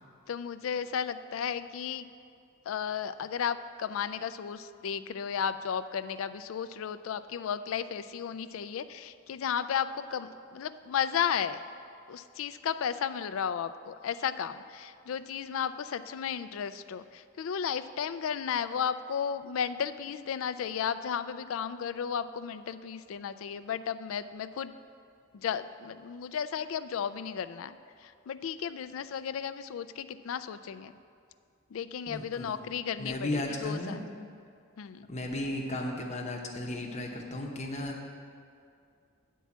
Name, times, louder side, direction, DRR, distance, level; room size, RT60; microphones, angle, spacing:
voice 1, 0.3-2.1 2.7-11.6 12.1-24.7 25.3-30.9 31.7-34.1 34.8-35.1, left 7 dB, 75° left, 13 dB, 0.3 m, -34 dB
voice 2, 32.1-32.6 33.0-34.0 35.1-38.1, left 1 dB, 35° left, 0 dB, 0.9 m, -35 dB
9.3 x 4.6 x 7.2 m, 2.3 s
head